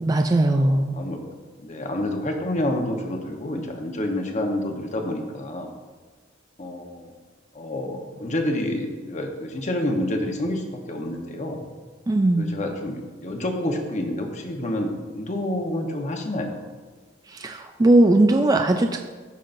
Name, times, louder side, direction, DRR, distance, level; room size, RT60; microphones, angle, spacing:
voice 1, 0.0-0.9 12.1-12.5 17.3-19.0, right 1 dB, 20° right, 4 dB, 0.4 m, -19 dB
voice 2, 0.5-1.2 1.6-5.7 6.6-7.1 7.5-11.6 12.4-16.6, left 1 dB, 40° left, 2 dB, 1.0 m, -28 dB
14.0 x 5.6 x 2.6 m, 1.4 s
head